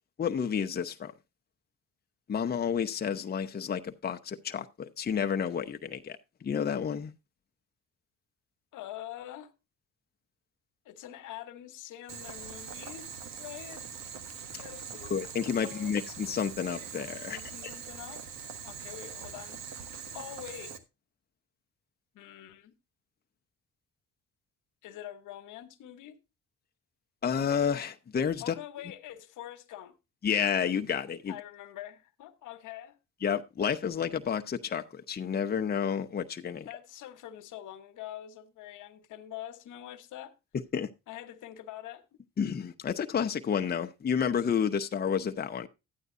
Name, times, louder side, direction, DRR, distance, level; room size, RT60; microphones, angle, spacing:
voice 1, 0.2-1.1 2.3-7.1 14.5-14.6 15.0-17.7 27.2-28.5 30.2-31.4 33.2-36.7 40.7-40.9 42.4-45.7, left 7 dB, 30° left, 0.8 m, -30 dB
voice 2, 8.7-9.5 10.8-13.1 13.4-13.8 14.6-15.2 15.5-15.9 17.2-18.2 18.6-19.6 20.1-20.8 22.1-22.8 24.8-26.2 28.4-30.0 31.3-33.0 36.5-40.3 41.1-42.0, left 12 dB, 85° left, 1.1 m, -45 dB
Boiling, 12.1-20.8, right 7 dB, 65° right, 1.4 m, -43 dB
12.5 x 9.2 x 2.6 m
cardioid pair, 90°, 30 cm